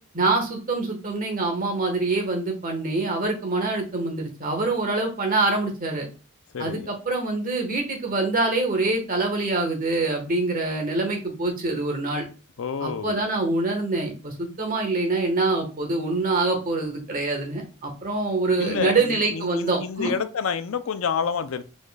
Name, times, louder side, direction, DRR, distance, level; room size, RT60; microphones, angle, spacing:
voice 1, 0.1-6.1 6.6-12.2 12.8-20.1, right 3 dB, 40° right, 1.3 m, -25 dB
voice 2, 6.5-6.9 12.6-13.2 18.6-21.6, left 6 dB, 70° left, 0.5 m, -28 dB
4.7 x 4.4 x 2.3 m
head